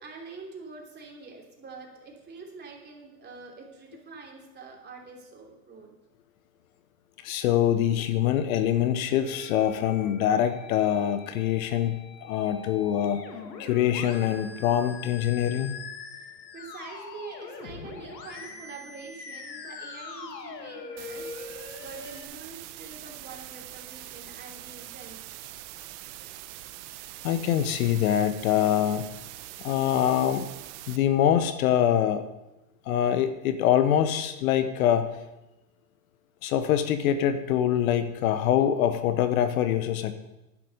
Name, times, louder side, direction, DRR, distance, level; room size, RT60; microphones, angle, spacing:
voice 1, 0.0-5.9 16.5-25.2, right 4 dB, 20° right, -1 dB, 3.0 m, -45 dB
voice 2, 7.2-13.2 13.6-15.8 27.2-29.1 29.6-30.5 30.9-32.3 32.9-35.2 36.4-40.1, left 10 dB, 60° left, 11 dB, 1.1 m, -24 dB
Musical instrument, 9.2-22.2, left 5 dB, 85° left, 1.9 m, -42 dB
sound 1, 21.0-31.0, right 15 dB, 45° right, 0.9 m, -43 dB
11.0 x 10.0 x 5.4 m, 0.97 s
hypercardioid pair, 115°, 48 cm